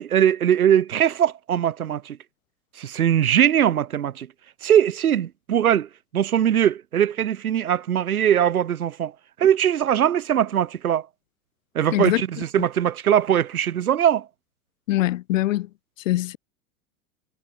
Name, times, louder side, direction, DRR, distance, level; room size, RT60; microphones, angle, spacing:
voice 1, 0.0-2.2 2.8-4.3 4.6-9.1 9.4-11.1 11.7-14.3, right 10 dB, 70° right, 1.5 m, -21 dB
voice 2, 11.9-12.2 14.9-15.7 16.0-16.4, left 16 dB, 55° left, 2.6 m, -22 dB
figure-of-eight pair, 90°, 45 cm